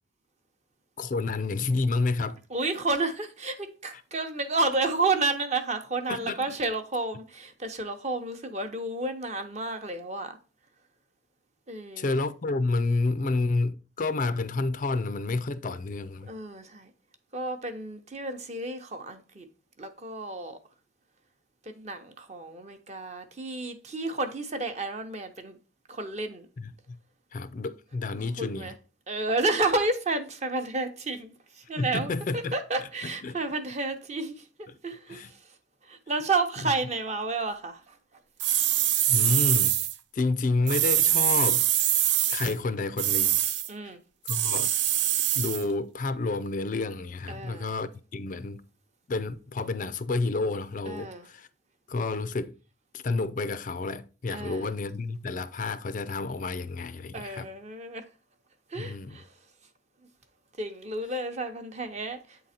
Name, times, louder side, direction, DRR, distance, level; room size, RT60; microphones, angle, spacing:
voice 1, 1.0-2.4 3.9-4.0 6.1-6.4 12.0-16.3 26.6-27.0 27.3-28.7 31.8-32.6 33.0-33.4 34.7-34.8 35.1-35.3 36.6-36.7 39.1-39.8 40.1-41.7 42.3-43.4 43.8-44.0 44.3-44.7 45.3-48.6 49.1-51.5 51.9-52.6 52.9-57.5 58.8-59.2, left 3 dB, 40° left, 0.4 m, -30 dB
voice 2, 2.5-10.4 11.7-12.1 16.3-16.9 17.3-19.5 19.8-20.6 21.7-25.6 25.9-26.5 28.4-28.7 29.1-34.4 34.8-35.4 35.9-37.9 38.5-38.6 43.7-44.0 47.3-47.7 50.9-51.3 54.3-54.7 57.1-58.0 58.7-59.3 60.6-62.4, right 3 dB, 35° right, 0.8 m, -31 dB
sound 1, 38.4-39.9 40.7-42.5 43.0-43.7 44.3-45.6, right 12 dB, 65° right, 0.5 m, -24 dB
8.3 x 3.8 x 4.3 m
head